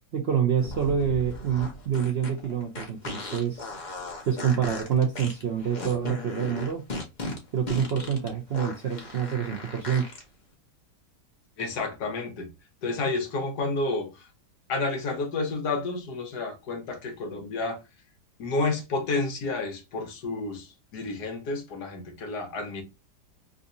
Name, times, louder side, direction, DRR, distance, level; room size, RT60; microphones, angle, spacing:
voice 1, 0.1-3.6 4.3-6.9 7.5-10.1, right 8 dB, 70° right, 0.6 m, -27 dB
sound 1, 0.6-10.2, left 2 dB, 35° left, 0.8 m, -37 dB
voice 2, 11.6-12.5 12.8-14.1 14.7-17.8 18.4-20.7 20.9-22.8, left 3 dB, 70° left, 1.5 m, -30 dB
3.8 x 2.7 x 2.5 m
omnidirectional pair, 1.9 m